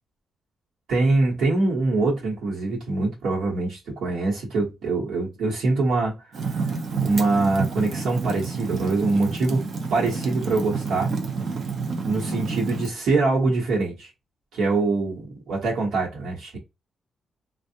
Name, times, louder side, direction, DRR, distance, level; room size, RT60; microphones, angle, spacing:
voice 1, 0.9-6.2 6.4-6.6 7.0-9.6 9.9-11.1 12.0-14.1 14.5-16.6, right 3 dB, 80° right, 1.1 m, -24 dB
Fire, 6.3-12.9, right 4 dB, 55° right, 0.8 m, -29 dB
3.4 x 2.4 x 2.7 m
cardioid pair, 140°, 0 cm